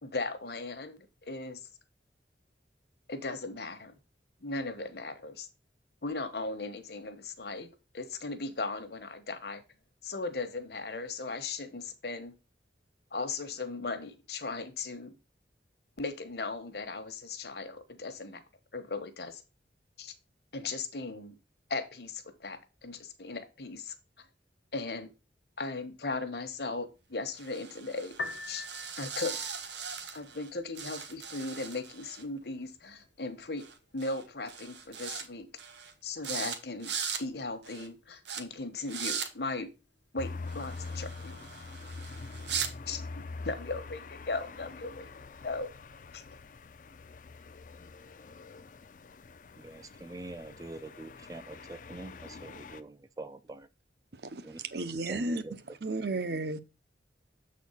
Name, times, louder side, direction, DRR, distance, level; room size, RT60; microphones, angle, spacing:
voice 1, 0.0-1.7 3.1-4.0 4.4-5.5 6.0-7.7 7.9-9.6 10.0-12.3 13.1-15.2 16.0-18.4 18.7-19.4 20.0-20.1 20.5-21.3 21.7-23.9 24.7-25.1 25.6-28.1 28.5-28.7 29.0-29.4 30.1-33.6 33.9-35.5 36.0-36.9 37.2-39.7 40.1-41.4 42.9-43.0 43.4-45.1 45.4-45.7 46.1-46.2, left 3 dB, 60° left, 1.1 m, -37 dB
sound 1, 27.4-30.5 30.8-32.2 33.6-33.7 34.0-34.2 34.5-35.3 35.6-35.9 36.2-36.6 36.8-37.2 37.6-37.9 38.3-38.4 38.9-39.3 40.5-42.7, right 7 dB, 80° right, 1.2 m, -39 dB
Piano, 28.1-41.1, left 2 dB, 90° left, 1.0 m, -50 dB
sound 2, 40.2-52.8, left 3 dB, 45° left, 0.4 m, -45 dB
voice 2, 49.6-53.7 54.4-54.6 55.1-55.5 55.9-56.0, right 2 dB, 20° right, 0.3 m, -45 dB
voice 3, 54.1-55.4 55.8-56.6, right 2 dB, 65° right, 0.7 m, -33 dB
7.2 x 4.3 x 5.6 m
head